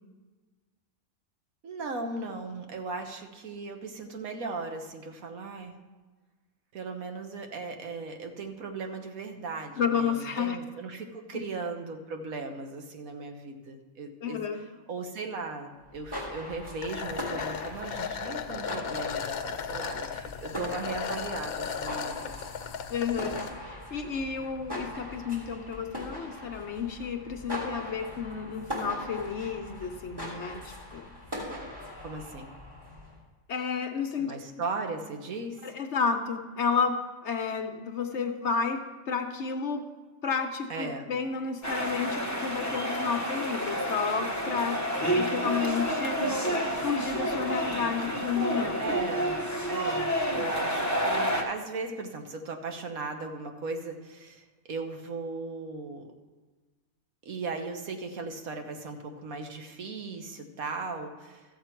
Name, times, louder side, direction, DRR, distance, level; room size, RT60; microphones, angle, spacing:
voice 1, 1.6-5.7 6.7-14.4 14.9-22.5 32.0-32.5 34.2-35.7 40.7-41.1 48.8-49.4 49.7-56.1 57.2-61.4, right 3 dB, 75° right, 5 dB, 1.5 m, -37 dB
voice 2, 9.8-10.6 11.3-11.4 14.2-14.6 22.9-31.1 33.5-34.3 35.6-39.9 40.2-46.2 46.8-48.8, left 6 dB, 60° left, 6 dB, 1.0 m, -31 dB
sound 1, 15.8-33.2, left 1 dB, 20° right, 2.8 m, -41 dB
sound 2, 16.8-23.5, left 6 dB, 80° left, 1.2 m, -36 dB
sound 3, 41.6-51.4, equal, 15° left, 0.9 m, -29 dB
14.0 x 7.7 x 4.5 m, 1.3 s
omnidirectional pair, 1.5 m